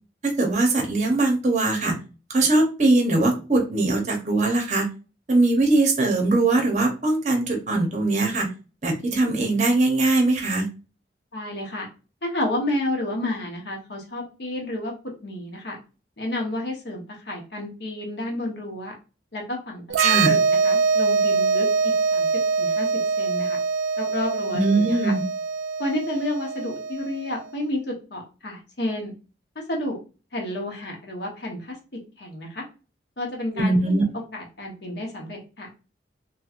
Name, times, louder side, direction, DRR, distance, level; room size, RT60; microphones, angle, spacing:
voice 1, 0.2-1.9 2.3-4.9 5.3-8.5 8.8-10.7 20.0-20.4 24.5-25.2 33.6-34.0, right 2 dB, 40° right, 2 dB, 0.7 m, -21 dB
voice 2, 11.3-11.9 12.2-14.9 15.2-15.8 16.2-18.9 19.3-22.3 22.6-23.6 24.0-25.1 25.8-29.1 29.5-30.0 30.3-31.8 32.2-32.6 33.2-34.0 34.3-35.7, left 1 dB, 60° left, 0 dB, 0.9 m, -31 dB
sound 1, 19.9-27.4, right 5 dB, 85° right, 0.3 m, -23 dB
3.0 x 2.7 x 2.4 m, 0.33 s
head